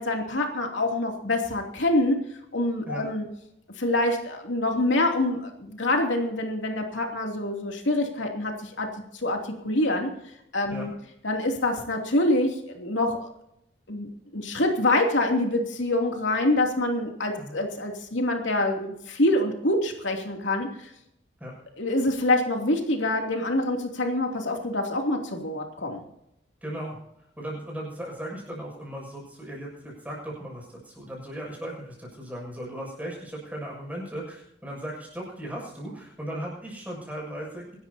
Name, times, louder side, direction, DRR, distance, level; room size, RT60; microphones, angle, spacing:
voice 1, 0.0-2.2 2.5-3.2 3.8-8.9 9.2-10.1 10.5-10.9 11.2-13.2 13.9-20.7 21.8-26.0, left 1 dB, 85° left, 2 dB, 2.8 m, -25 dB
voice 2, 26.6-37.8, right 1 dB, 10° right, -3 dB, 7.0 m, -37 dB
25.5 x 12.5 x 2.8 m, 0.80 s
head